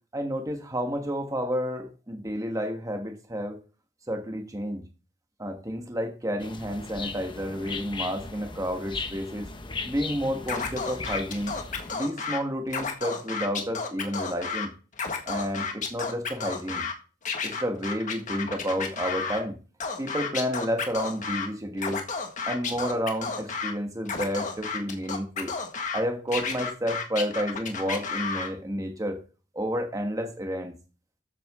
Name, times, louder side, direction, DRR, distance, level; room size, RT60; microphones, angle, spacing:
voice 1, 0.1-3.6 4.1-4.8 5.4-9.5 9.8-11.5 11.9-14.7 15.2-16.9 17.4-19.6 20.0-22.0 22.5-25.5 25.9-29.2 29.5-30.7, equal, 15° right, 4 dB, 1.4 m, -30 dB
sound 1, 6.4-11.9, left 3 dB, 25° left, 1.0 m, -37 dB
Scratching (performance technique), 10.5-12.4 12.7-14.7 14.9-16.9 17.3-19.4 19.8-21.5 21.8-23.7 24.1-26.0 26.3-28.5, left 5 dB, 40° left, 1.8 m, -32 dB
13.5 x 7.9 x 3.7 m, 0.35 s
head